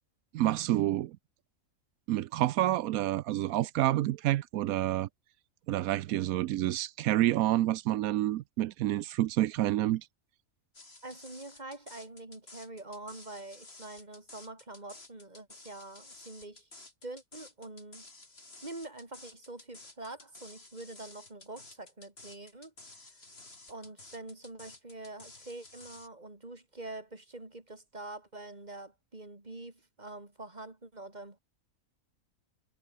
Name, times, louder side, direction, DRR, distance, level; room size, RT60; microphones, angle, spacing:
voice 1, 0.3-1.2 2.1-5.1 5.7-10.1, right 14 dB, 85° right, 1.1 m, -28 dB
sound 1, 10.7-26.1, left 2 dB, 45° left, 3.8 m, -53 dB
voice 2, 11.0-16.7 17.0-18.1 18.6-22.7 23.7-31.4, right 2 dB, 30° right, 3.5 m, -45 dB
omnidirectional pair, 1.4 m